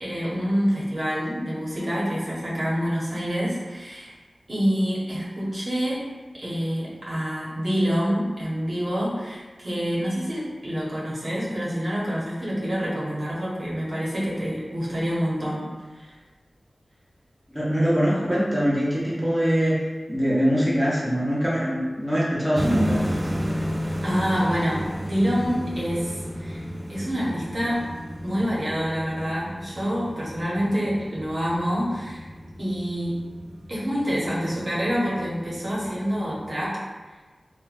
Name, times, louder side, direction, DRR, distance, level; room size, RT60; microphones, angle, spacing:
voice 1, 0.0-4.1 4.5-6.0 6.3-15.7 15.9-16.2 24.0-27.9 28.2-32.2 32.6-33.2 33.7-36.8, equal, 55° right, -7 dB, 0.8 m, -27 dB
voice 2, 17.5-23.3, equal, ahead, -8 dB, 0.9 m, -23 dB
sound 1, 22.6-36.5, equal, 25° right, 0.3 m, -33 dB
3.0 x 2.1 x 2.5 m, 1.3 s
wide cardioid pair, 55°, 0 cm